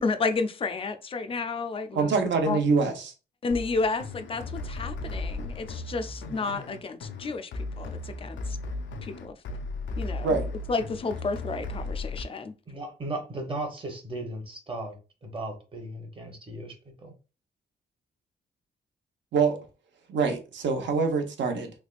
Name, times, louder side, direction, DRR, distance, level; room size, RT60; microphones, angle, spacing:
voice 1, 0.0-2.1 2.4-2.6 3.4-8.6 9.0-9.4 10.0-10.4 10.7-12.5, left 4 dB, 30° left, 0.4 m, -31 dB
voice 2, 1.9-3.1 10.2-10.5 19.3-19.6 20.1-21.7, right 4 dB, 75° right, 0.8 m, -25 dB
sound 1, 3.5-12.2, left 2 dB, 90° left, 0.5 m, -36 dB
voice 3, 12.7-15.0 15.2-17.1, right 2 dB, 25° right, 0.8 m, -36 dB
3.4 x 3.2 x 2.4 m
wide cardioid pair, 140°, 19 cm